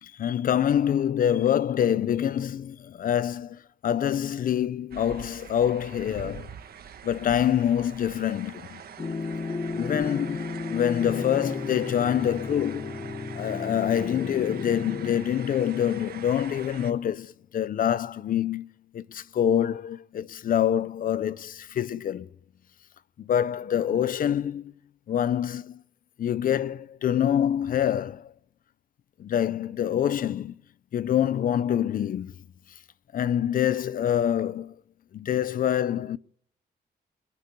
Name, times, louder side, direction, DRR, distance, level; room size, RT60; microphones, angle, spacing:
voice 1, 0.0-6.5 7.0-8.8 9.7-13.0 13.3-18.7 18.9-22.3 23.3-24.7 25.1-25.8 26.2-28.3 29.2-30.5 30.9-32.3 33.1-34.7 35.1-36.2, left 10 dB, 55° left, 0.6 m, -26 dB
sound 1, 4.9-16.9, right 8 dB, 65° right, 1.4 m, -44 dB
sound 2, 9.0-15.2, left 4 dB, 25° left, 1.1 m, -33 dB
21.5 x 9.9 x 6.8 m
wide cardioid pair, 160°, 17 cm